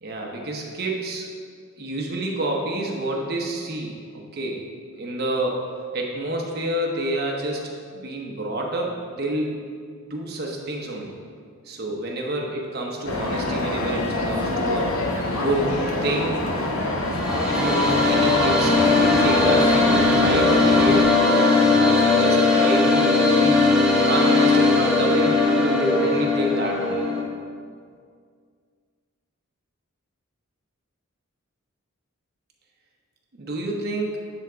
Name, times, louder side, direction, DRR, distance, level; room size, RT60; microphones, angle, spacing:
voice 1, 0.0-1.3 1.8-4.6 5.0-9.6 10.0-11.1 11.6-14.9 15.3-16.4 17.4-23.7 24.1-27.1 33.4-34.2, right 1 dB, 50° right, 0 dB, 0.9 m, -28 dB
sound 1, 13.1-21.0, left 2 dB, 80° left, 0.8 m, -25 dB
sound 2, 17.0-27.2, left 3 dB, 5° right, 0.8 m, -19 dB
9.8 x 3.5 x 3.8 m, 2.1 s
head